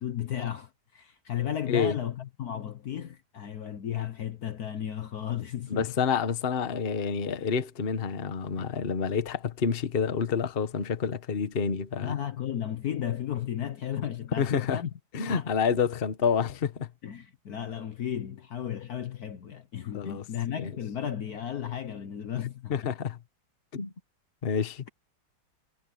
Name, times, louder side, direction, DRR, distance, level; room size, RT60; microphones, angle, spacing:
voice 1, 0.0-5.9 8.6-8.7 12.0-14.9 15.2-15.5 17.0-22.8, left 10 dB, 55° left, 1.3 m, -34 dB
voice 2, 5.7-12.1 14.4-14.8 15.1-16.9 19.9-20.2 20.6-20.7 22.7-23.2 23.7-23.9 24.4-24.9, left 6 dB, 35° left, 1.1 m, -28 dB
omnidirectional pair, 2.2 m